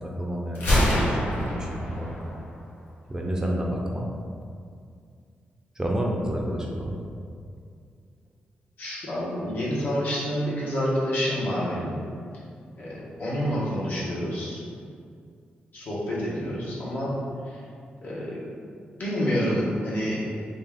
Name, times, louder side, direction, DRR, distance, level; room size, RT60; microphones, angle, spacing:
voice 1, 0.0-2.3 3.1-4.1 5.8-7.0, equal, 15° right, -1 dB, 0.5 m, -29 dB
Gunshot gunfire, 0.5-2.5, equal, 85° left, 1.1 m, -25 dB
voice 2, 8.8-11.9 12.8-14.6 15.7-17.2 17.5-17.6 18.0-18.4 19.0-20.2, equal, 60° left, -7 dB, 1.3 m, -28 dB
4.0 x 2.5 x 3.5 m, 2.3 s
cardioid pair, 80°, 4 cm